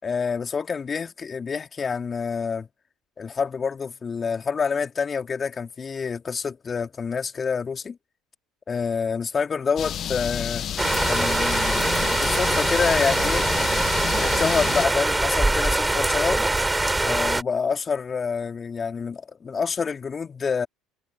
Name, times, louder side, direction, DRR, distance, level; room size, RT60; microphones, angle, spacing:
voice 1, 0.0-2.7 3.2-8.0 8.7-10.6 11.0-13.5 14.1-16.5 17.0-20.7, left 5 dB, 30° left, 3.8 m, -27 dB
sound 1, 9.8-14.9, left 10 dB, 50° left, 1.4 m, -30 dB
sound 2, 10.8-17.4, right 2 dB, 10° right, 5.0 m, -23 dB
hypercardioid pair, 65°, 0 cm